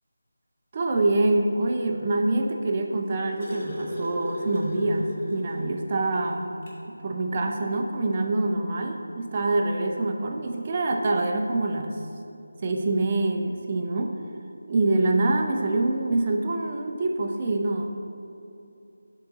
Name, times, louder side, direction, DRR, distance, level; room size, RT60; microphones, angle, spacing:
voice 1, 0.7-6.5 7.0-12.0 12.6-14.1 14.7-17.9, right 2 dB, 20° right, 2 dB, 0.4 m, -25 dB
sound 1, 2.8-5.7 6.1-6.2 6.6-6.8 8.0-8.1, equal, 25° left, 1.0 m, -33 dB
7.2 x 3.8 x 3.9 m, 2.7 s
figure-of-eight pair, 175°, 0 cm